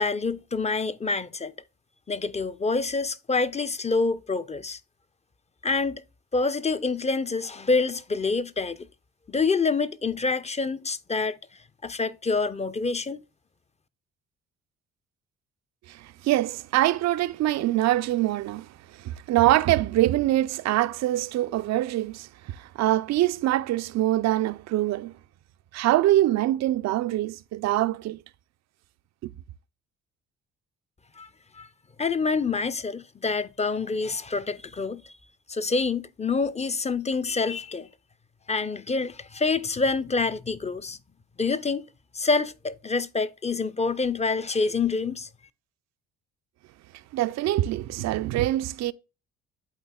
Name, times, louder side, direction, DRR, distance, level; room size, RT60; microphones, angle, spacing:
voice 1, 0.0-1.5 2.1-4.8 5.6-6.0 6.3-8.9 9.3-11.4 11.8-13.2 31.2-31.7 32.0-35.1 35.5-37.9 38.5-41.0 41.4-41.9 42.1-45.3, left 4 dB, 20° left, 0.7 m, -27 dB
voice 2, 15.9-18.7 19.0-25.1 25.7-28.2 29.2-29.3 47.1-48.9, right 15 dB, 65° right, 0.5 m, -24 dB
12.0 x 4.0 x 2.3 m
supercardioid pair, 60°, 29 cm